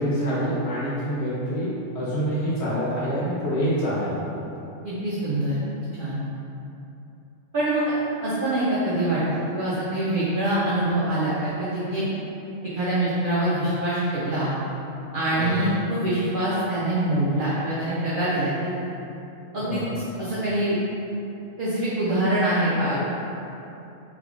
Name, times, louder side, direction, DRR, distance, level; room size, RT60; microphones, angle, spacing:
voice 1, 0.0-4.4 15.3-15.7 19.6-20.0, equal, 55° left, -10 dB, 1.2 m, -26 dB
voice 2, 4.8-5.6 6.0-6.2 7.5-7.9 8.2-9.2 9.5-12.1 12.7-14.5 15.1-18.7 19.5-19.8 20.2-20.8 21.6-23.0, right 1 dB, 55° right, -9 dB, 0.6 m, -24 dB
3.5 x 3.3 x 2.4 m, 2.9 s
omnidirectional pair, 1.4 m